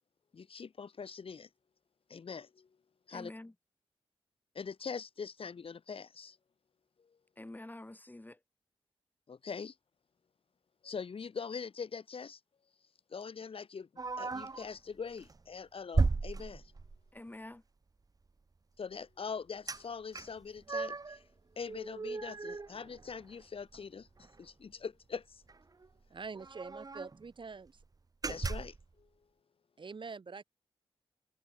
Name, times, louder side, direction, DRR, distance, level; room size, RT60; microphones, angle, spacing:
voice 1, 0.3-1.5 2.1-2.7 3.1-3.3 4.6-6.4 9.3-9.8 10.8-12.4 13.1-13.9 14.2-16.7 18.8-21.2 21.6-25.4 28.3-29.1, left 5 dB, 65° left, 3.4 m, -43 dB
voice 2, 3.1-3.5 7.4-8.4 17.1-17.6, left 1 dB, 15° left, 7.5 m, -47 dB
sound 1, 14.0-14.7 15.2-15.4 15.9-17.1 19.7-19.8 20.1-21.2 21.6-23.4 23.7-23.8 24.2-24.4 25.5-25.6 25.8-25.9 26.4-27.2 27.7-27.8 28.2-28.9, right 3 dB, 35° right, 1.5 m, -35 dB
voice 3, 26.1-27.7 29.8-30.4, right 4 dB, 50° right, 3.4 m, -45 dB
cardioid pair, 80°, 10 cm